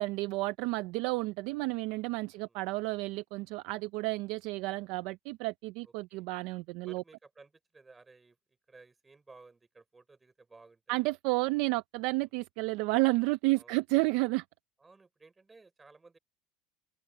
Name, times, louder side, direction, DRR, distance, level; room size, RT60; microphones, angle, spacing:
voice 1, 0.0-7.0 10.9-14.4, right 22 dB, 65° right, 0.4 m, -31 dB
voice 2, 2.3-2.6 5.8-6.3 6.8-8.4 8.7-11.1 12.1-12.3 13.5-13.8 14.8-16.2, right 3 dB, 10° right, 5.3 m, -57 dB
cardioid pair, 165°, 0 cm